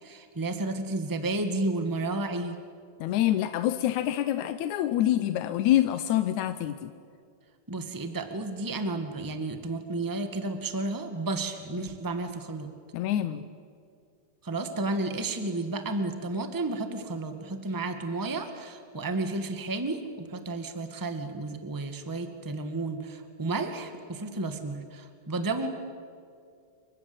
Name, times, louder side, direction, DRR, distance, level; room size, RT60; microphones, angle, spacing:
voice 1, 0.0-2.5 7.7-12.7 14.4-25.7, right 2 dB, 15° right, 7 dB, 0.7 m, -32 dB
voice 2, 3.0-6.9 12.9-13.5, left 12 dB, 70° left, 11 dB, 1.9 m, -26 dB
28.5 x 24.5 x 8.0 m, 2.2 s
omnidirectional pair, 4.0 m